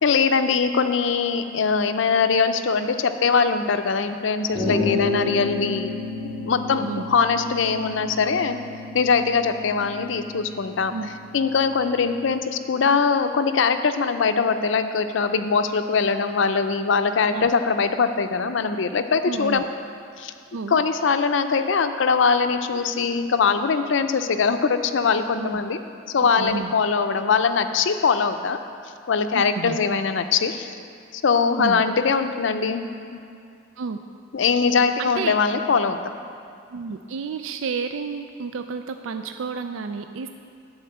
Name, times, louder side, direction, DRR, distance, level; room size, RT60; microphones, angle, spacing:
voice 1, 0.0-5.9 6.2-8.6 8.9-10.9 11.3-19.7 20.2-20.3 20.7-25.8 26.1-28.6 29.1-30.8 31.1-33.2 34.3-36.0, left 5 dB, 70° left, 9 dB, 0.5 m, -22 dB
sound 1, 4.5-12.2, left 2 dB, 30° right, 2.5 m, -31 dB
voice 2, 6.7-7.1 10.9-11.1 17.3-17.5 19.2-19.6 20.5-20.8 25.4-25.6 26.2-26.7 29.3-29.8 31.6-31.8 33.8-34.0 35.0-35.4 36.7-40.3, right 5 dB, 80° right, 7 dB, 0.4 m, -31 dB
11.0 x 4.3 x 7.8 m, 2.5 s
head